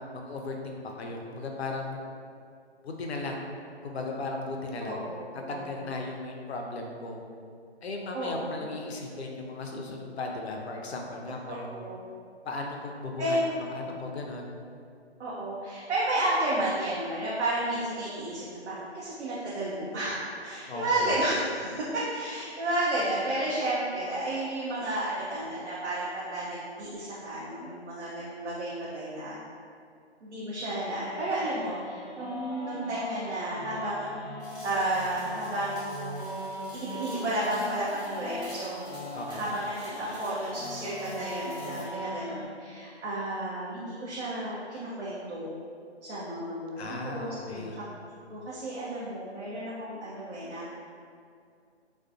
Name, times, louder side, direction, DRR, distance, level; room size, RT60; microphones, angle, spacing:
voice 1, 0.1-2.0 2.8-3.4 3.8-5.0 5.5-7.2 7.8-11.8 12.5-14.5 20.7-21.1 39.1-39.4 46.8-47.8, left 3 dB, 70° left, 1 dB, 0.5 m, -36 dB
voice 2, 4.8-5.7 8.1-8.3 8.6-8.7 11.5-12.0 13.2-13.5 15.2-29.4 30.2-34.1 34.6-38.8 39.3-45.6 46.1-47.8 48.3-50.7, right 1 dB, 80° right, -8 dB, 0.6 m, -32 dB
sound 1, 30.8-42.5, left 1 dB, 45° right, 1.1 m, -40 dB
sound 2, 34.4-41.9, equal, 20° left, 0.8 m, -52 dB
2.5 x 2.2 x 2.4 m, 2.3 s
hypercardioid pair, 170°, 34 cm